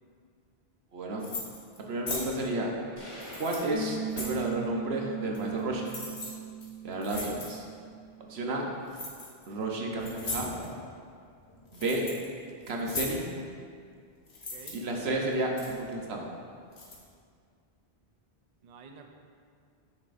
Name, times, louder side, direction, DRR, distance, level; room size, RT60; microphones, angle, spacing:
voice 1, 0.9-1.3 1.9-2.7 3.4-5.9 6.8-7.6 8.2-8.6 9.5-10.5 11.7-12.0 12.7-13.3 14.7-16.3, right 2 dB, 85° right, 0 dB, 1.1 m, -31 dB
sound 1, 1.2-1.8 2.1-2.3 3.1-4.4 5.3-5.6 5.8-6.3 6.6-6.7 7.0-7.5 8.9-9.5 10.0-10.7 11.4-12.3 12.6-13.2 14.3-14.7 15.3-15.8 16.7-17.0, left 3 dB, 85° left, 1.4 m, -38 dB
sound 2, 3.0-4.9, equal, 25° left, 1.3 m, -47 dB
Piano, 3.7-8.8, right 7 dB, 30° right, 1.1 m, -39 dB
voice 2, 7.0-7.3 11.8-12.1 14.5-14.8 18.6-19.1, right 6 dB, 50° right, 3 dB, 0.5 m, -49 dB
8.0 x 6.3 x 2.6 m, 2.2 s
omnidirectional pair, 1.0 m